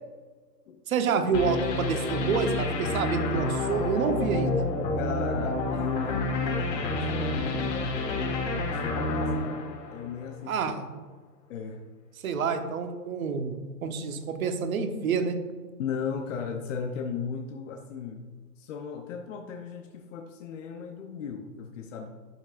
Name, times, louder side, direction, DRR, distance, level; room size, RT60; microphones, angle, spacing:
voice 1, 0.9-4.7 10.5-10.9 12.2-13.5 13.8-15.4, right 5 dB, 55° right, 8 dB, 1.0 m, -28 dB
sound 1, 1.3-10.4, left 2 dB, 85° left, 1.4 m, -29 dB
voice 2, 5.0-10.8 11.5-11.8 15.8-18.2 18.6-22.1, left 6 dB, 50° left, 4 dB, 0.8 m, -36 dB
11.5 x 6.0 x 2.5 m, 1.4 s
hypercardioid pair, 135°, 49 cm